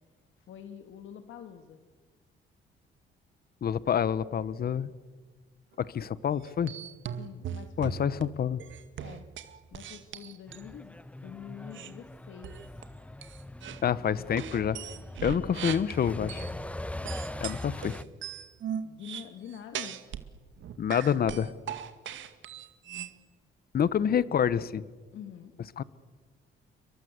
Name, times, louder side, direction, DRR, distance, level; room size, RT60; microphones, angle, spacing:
voice 1, 0.4-1.9 7.2-8.3 9.0-9.3 9.7-12.8 18.8-20.0 25.1-25.5, left 9 dB, 75° left, 7 dB, 1.9 m, -46 dB
voice 2, 3.6-4.9 5.8-6.7 7.8-8.6 13.8-14.8 15.2-16.5 17.4-18.0 20.8-21.5 23.7-24.8 25.8-25.9, left 8 dB, 50° left, 17 dB, 1.1 m, -27 dB
sound 1, 6.4-8.2 8.6-10.7 11.7-11.9 12.4-12.8 13.2-13.8 14.4-16.5 17.0-20.3 20.6-23.1, right 9 dB, 75° right, 2.0 m, -39 dB
Truck, 10.5-18.0, left 1 dB, 5° left, 1.0 m, -41 dB
29.5 x 23.5 x 8.2 m, 1.4 s
cardioid pair, 90°, 20 cm